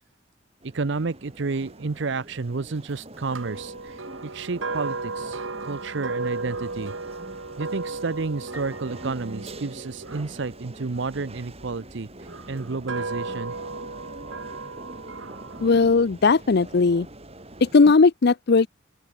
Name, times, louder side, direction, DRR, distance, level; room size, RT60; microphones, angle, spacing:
sound 1, 0.6-17.9, right 1 dB, 30° right, 7.4 m, -44 dB
voice 1, 0.6-4.0 4.2-6.9 7.6-12.1 12.5-13.5, right 4 dB, 65° right, 0.7 m, -31 dB
sound 2, 3.3-11.5 12.2-15.7, right 3 dB, 85° right, 2.3 m, -35 dB
Piano, 8.5-10.4, right 1 dB, 10° right, 3.9 m, -50 dB
voice 2, 15.6-17.1 17.6-18.7, left 4 dB, 55° left, 0.6 m, -18 dB
open air
head